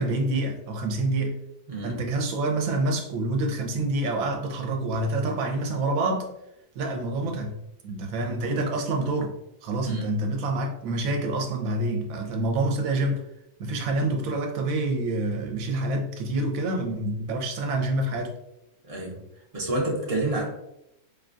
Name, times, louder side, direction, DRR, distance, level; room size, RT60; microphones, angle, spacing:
voice 1, 0.0-1.3 1.8-6.3 6.7-9.3 9.6-13.2 13.6-18.3, right 2 dB, 65° right, 3 dB, 1.0 m, -27 dB
voice 2, 1.7-2.0 9.8-10.1 18.8-19.2 19.5-20.5, right 2 dB, 45° right, -3 dB, 0.4 m, -29 dB
4.8 x 2.3 x 2.5 m, 0.83 s
omnidirectional pair, 1.7 m